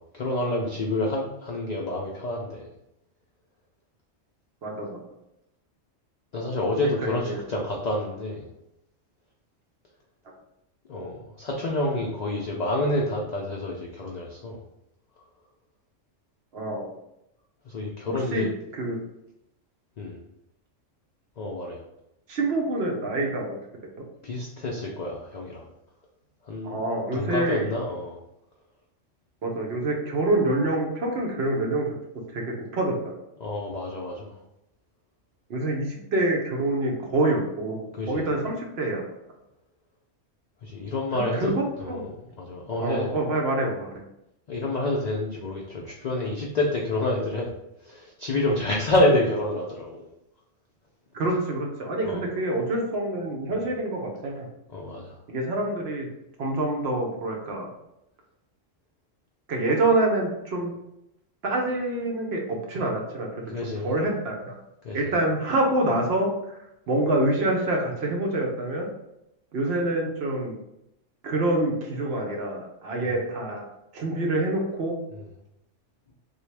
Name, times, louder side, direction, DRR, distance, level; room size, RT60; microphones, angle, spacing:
voice 1, 0.1-2.6 6.3-8.5 10.9-14.6 17.7-18.5 20.0-20.2 21.4-21.8 24.2-25.6 26.5-26.8 27.1-28.2 33.4-34.3 37.9-38.2 40.6-42.1 42.4-43.1 44.5-47.5 47.8-50.1 52.1-52.2 54.7-55.1 63.5-63.9 64.8-65.1, left 1 dB, 85° left, -2 dB, 0.3 m, -28 dB
voice 2, 4.6-5.0 7.0-7.4 16.5-16.9 18.1-18.5 18.7-19.0 22.3-23.6 26.6-27.7 29.4-31.9 32.3-32.4 32.7-33.1 35.5-39.0 41.1-42.1 42.8-43.9 51.1-54.5 55.3-56.1 56.4-57.7 59.5-60.7 61.4-64.6 64.9-66.6 66.9-68.9 69.5-70.6 71.2-73.7 73.9-74.9, right 2 dB, 60° right, 0 dB, 0.9 m, -26 dB
3.4 x 2.3 x 3.2 m, 0.84 s
omnidirectional pair, 1.3 m